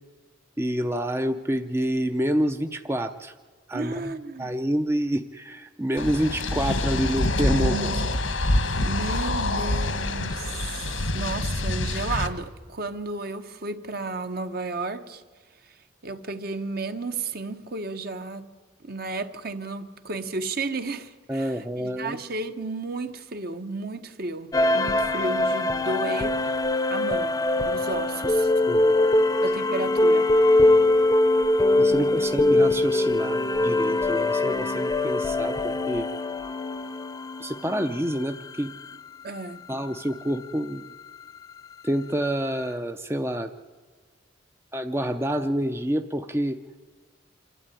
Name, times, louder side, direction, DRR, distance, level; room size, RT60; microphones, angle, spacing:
voice 1, 0.6-3.3 3.7-4.1 4.4-7.9 21.3-22.2 28.7-29.2 31.8-36.1 37.4-38.7 39.7-40.8 41.8-43.5 44.7-46.6, equal, 15° right, 7 dB, 0.6 m, -28 dB
voice 2, 3.7-4.5 7.5-8.1 8.8-15.2 15.6-18.5 18.8-26.3 26.9-28.5 29.4-30.3 31.9-32.1 39.2-39.6, right 3 dB, 50° right, 8 dB, 1.2 m, -33 dB
sound 1, 6.0-12.3, left 2 dB, 90° left, 1.7 m, -26 dB
sound 2, 24.5-38.6, left 2 dB, 20° left, 0.8 m, -22 dB
27.0 x 12.5 x 9.8 m, 1.5 s
head